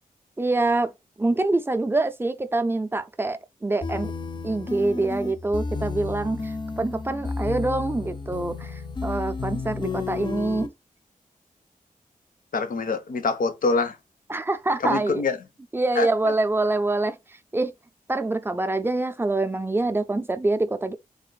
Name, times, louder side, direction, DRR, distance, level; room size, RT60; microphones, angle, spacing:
voice 1, 0.4-0.9 1.2-4.1 4.4-10.7 14.3-15.2 15.7-17.2 17.5-17.7 18.1-21.0, right 2 dB, 15° right, 0.4 m, -25 dB
sound 1, 3.8-10.7, left 4 dB, 30° left, 0.5 m, -32 dB
voice 2, 12.5-14.0 14.8-15.4 16.0-16.3, left 4 dB, 65° left, 0.7 m, -25 dB
3.9 x 2.5 x 3.8 m
wide cardioid pair, 145°, 15 cm